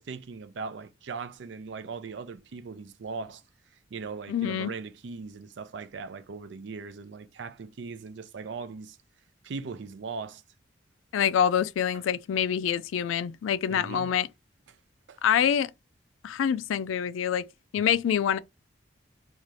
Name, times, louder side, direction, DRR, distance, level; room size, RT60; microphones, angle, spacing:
voice 1, 0.0-3.4 3.9-9.0 9.4-10.4 13.7-14.1 14.7-14.8 15.1-15.2, right 4 dB, 65° right, 0.4 m, -39 dB
voice 2, 4.3-4.7 11.1-14.3 15.2-15.7 16.2-17.4 17.7-18.4, left 9 dB, 85° left, 0.3 m, -26 dB
2.7 x 2.4 x 3.1 m
head